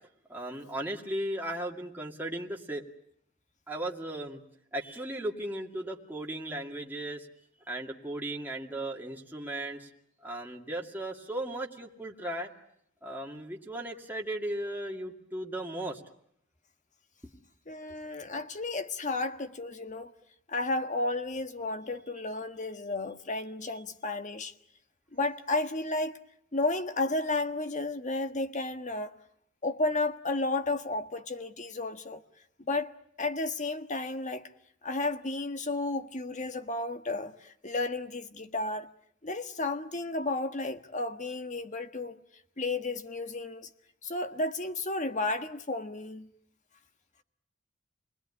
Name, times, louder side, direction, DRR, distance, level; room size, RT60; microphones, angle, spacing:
voice 1, 0.3-2.8 3.7-4.4 4.7-7.3 7.7-9.9 10.2-12.5 13.0-16.0, right 1 dB, 10° right, 2.3 m, -36 dB
voice 2, 17.7-20.1 20.5-24.5 25.1-26.1 26.5-29.1 29.6-32.2 32.7-32.9 33.2-34.4 34.8-38.9 39.2-42.2 42.6-43.7 44.0-46.3, left 2 dB, 40° left, 1.5 m, -32 dB
28.5 x 20.5 x 9.9 m
head